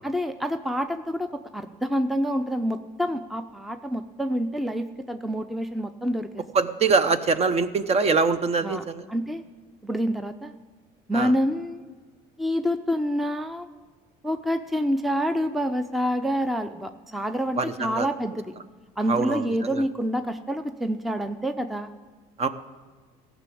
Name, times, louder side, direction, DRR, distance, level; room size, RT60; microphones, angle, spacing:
voice 1, 0.0-6.4 8.6-9.4 9.8-10.5 11.1-11.9 12.4-13.7 14.2-18.5 19.0-21.9, equal, ahead, 9 dB, 0.6 m, -27 dB
voice 2, 6.5-9.0 11.1-11.3 17.6-18.1 19.1-19.8 22.4-22.5, right 4 dB, 35° right, 12 dB, 0.8 m, -24 dB
14.0 x 6.2 x 8.5 m, 1.4 s
supercardioid pair, 95°, 18 cm